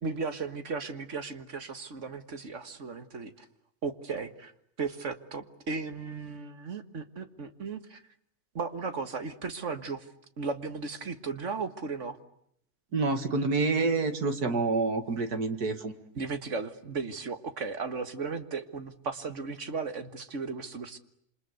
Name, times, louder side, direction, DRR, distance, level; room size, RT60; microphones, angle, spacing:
voice 1, 0.0-3.5 3.8-4.5 4.8-8.0 8.5-10.1 10.4-12.2 16.2-21.0, right 4 dB, 50° right, 9 dB, 1.9 m, -36 dB
voice 2, 12.9-15.9, right 3 dB, 90° right, 8 dB, 2.6 m, -27 dB
27.5 x 26.5 x 8.1 m, 0.71 s
omnidirectional pair, 1.6 m